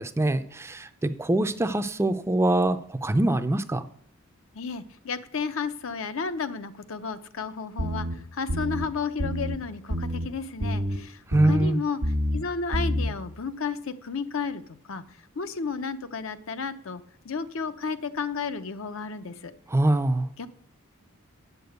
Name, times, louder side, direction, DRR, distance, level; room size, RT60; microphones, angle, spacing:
voice 1, 0.0-3.8 11.3-11.8 19.7-20.3, right 1 dB, 10° right, 10 dB, 0.4 m, -24 dB
voice 2, 4.5-12.0 12.3-19.5 20.4-20.5, left 5 dB, 65° left, 10 dB, 0.7 m, -32 dB
sound 1, 7.8-8.1 8.5-8.9 9.2-9.6 9.9-10.3 10.6-11.0 11.3-11.7 12.0-12.4 12.7-13.1, equal, 75° right, 1.3 m, -27 dB
8.6 x 6.9 x 7.9 m, 0.63 s
head